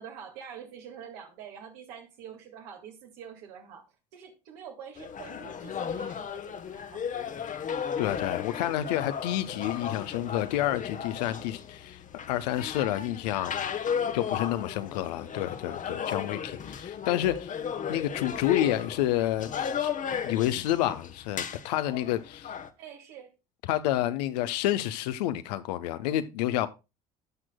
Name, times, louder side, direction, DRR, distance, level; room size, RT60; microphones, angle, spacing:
voice 1, 0.0-7.3 22.8-23.3, right 8 dB, 70° right, 1.8 m, -46 dB
sound 1, 5.0-22.7, left 7 dB, 40° left, 0.9 m, -35 dB
voice 2, 8.0-12.0 12.3-13.7 14.1-17.6 17.9-19.9 20.2-22.5 23.7-26.7, left 13 dB, 75° left, 0.7 m, -29 dB
16.0 x 6.0 x 2.2 m
hypercardioid pair, 60°, 21 cm